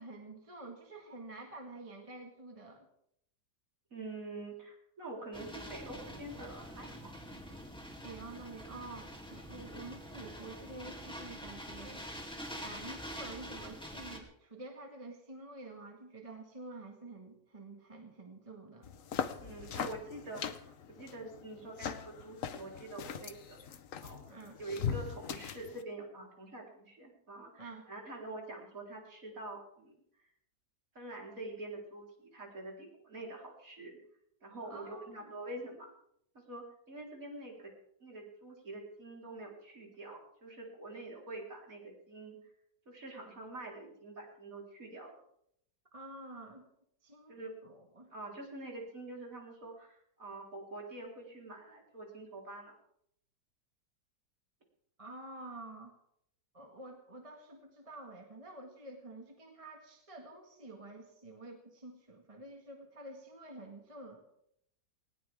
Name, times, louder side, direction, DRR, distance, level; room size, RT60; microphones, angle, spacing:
voice 1, 0.0-2.8 8.0-12.1 12.6-18.9 24.3-24.6 27.6-27.9 34.6-35.3 45.9-46.7 47.0-48.1 55.0-55.9 56.5-64.2, right 2 dB, 20° right, 2 dB, 1.7 m, -49 dB
voice 2, 3.9-7.1 19.4-29.9 30.9-34.0 34.4-35.9 36.3-37.7 38.0-42.4 42.9-45.2 47.3-47.5 48.1-52.7, right 2 dB, 45° right, -1 dB, 4.4 m, -46 dB
sound 1, 5.3-14.2, equal, 5° left, 2.5 m, -46 dB
sound 2, 18.8-25.8, left 7 dB, 55° left, 1.1 m, -40 dB
19.5 x 18.5 x 3.5 m, 0.73 s
omnidirectional pair, 1.9 m